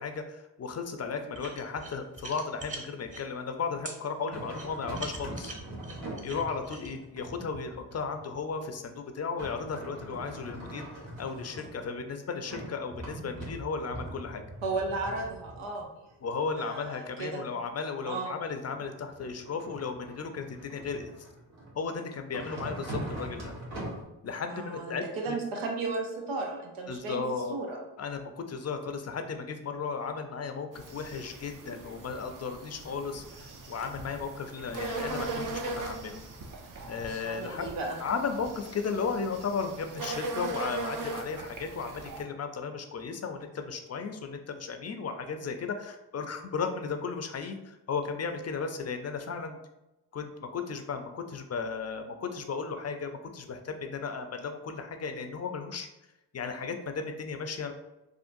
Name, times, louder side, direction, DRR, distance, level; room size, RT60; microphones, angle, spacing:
voice 1, 0.0-5.5 6.2-10.9 11.2-14.4 16.2-21.1 21.7-23.5 24.2-25.4 26.9-27.6 28.0-36.2 36.9-37.7 38.0-49.6 50.1-55.9 56.3-57.7, left 5 dB, 35° left, 6 dB, 0.5 m, -35 dB
sound 1, 1.3-3.2 3.8-4.0 4.5-6.9, right 2 dB, 15° right, 0.9 m, -42 dB
sound 2, 4.3-8.7 9.4-12.1 12.4-17.1 18.7-21.8 22.3-24.0, right 1 dB, 75° right, 1.3 m, -42 dB
voice 2, 14.6-15.9 16.6-17.4 18.1-18.3 24.5-27.2 27.5-27.8 37.2-38.0, right 3 dB, 90° right, 1 dB, 0.7 m, -34 dB
sound 3, 30.7-42.2, right 3 dB, 45° right, 0.7 m, -39 dB
3.6 x 2.4 x 2.6 m, 0.96 s
supercardioid pair, 45°, 47 cm